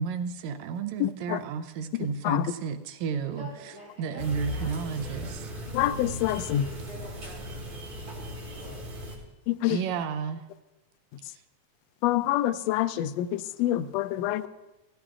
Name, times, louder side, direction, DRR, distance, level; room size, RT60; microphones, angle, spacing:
voice 1, 0.0-3.5 4.0-5.5 9.7-10.4 11.3-11.4, right 6 dB, 75° right, 8 dB, 1.8 m, -32 dB
voice 2, 1.0-1.4 1.9-2.5 5.7-6.6 9.5-9.8 12.0-14.5, left 13 dB, 85° left, 12 dB, 1.5 m, -27 dB
voice 3, 3.2-5.4 6.3-8.8, left 1 dB, 40° left, -6 dB, 6.3 m, -48 dB
sound 1, 4.2-9.2, equal, 60° right, 3.5 m, -37 dB
16.0 x 16.0 x 2.5 m, 1.1 s
omnidirectional pair, 3.5 m